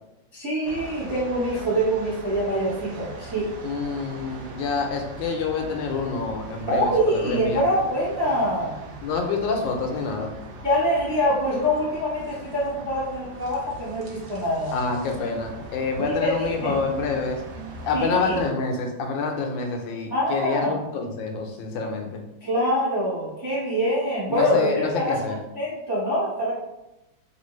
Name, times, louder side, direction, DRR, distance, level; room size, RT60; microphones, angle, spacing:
voice 1, 0.3-3.5 6.7-8.8 10.6-14.8 16.0-16.9 17.9-18.4 20.1-20.9 22.4-25.2 25.5-26.5, equal, 30° right, -8 dB, 0.4 m, -25 dB
sound 1, 0.6-18.5, right 2 dB, 75° right, 1.3 m, -41 dB
voice 2, 3.6-7.6 9.0-10.3 14.7-17.4 17.8-22.2 24.3-25.4, left 4 dB, 80° left, 3 dB, 1.3 m, -27 dB
3.3 x 2.4 x 3.0 m, 0.93 s
omnidirectional pair, 2.1 m